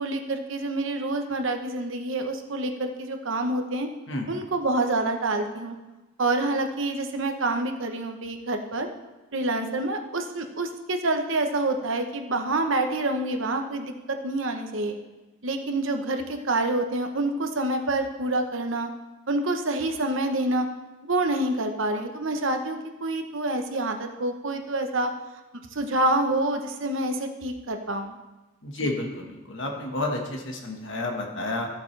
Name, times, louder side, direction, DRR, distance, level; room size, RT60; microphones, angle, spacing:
voice 1, 0.0-3.9 4.3-5.7 6.2-8.9 9.3-15.0 15.4-18.9 19.3-20.7 21.1-25.1 25.7-28.2 28.8-28.9, right 2 dB, 70° right, 5 dB, 1.0 m, -27 dB
voice 2, 28.6-31.7, left 2 dB, 60° left, 2 dB, 1.6 m, -30 dB
14.0 x 8.3 x 3.4 m, 1.1 s
head